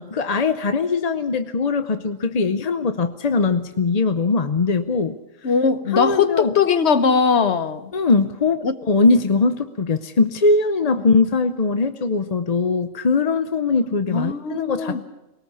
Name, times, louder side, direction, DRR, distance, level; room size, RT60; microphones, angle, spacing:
voice 1, 0.0-5.2 5.4-5.5 5.9-6.5 7.9-15.0, left 3 dB, 40° left, 0.7 m, -21 dB
voice 2, 5.4-7.9 8.6-8.8 14.1-15.0, left 5 dB, 55° left, 1.3 m, -20 dB
21.5 x 19.0 x 7.0 m
omnidirectional pair, 1.4 m